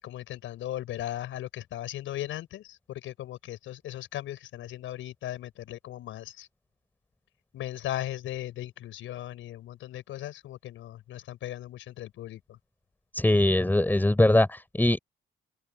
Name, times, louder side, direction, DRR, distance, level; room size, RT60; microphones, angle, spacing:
voice 1, 0.0-6.5 7.5-12.6, left 13 dB, 85° left, 5.7 m, -37 dB
voice 2, 13.1-15.0, left 1 dB, 10° left, 5.9 m, -22 dB
open air
cardioid pair, 90°, 20 cm